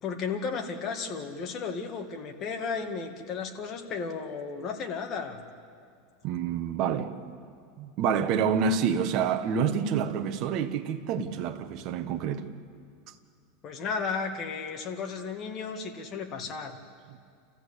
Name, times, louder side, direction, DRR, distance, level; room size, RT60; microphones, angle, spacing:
voice 1, 0.0-5.4 13.6-16.8, left 5 dB, 35° left, 2.1 m, -34 dB
voice 2, 6.2-7.3 7.8-12.5, right 7 dB, 45° right, 1.4 m, -28 dB
28.5 x 15.0 x 8.5 m
supercardioid pair, 150°, 0 cm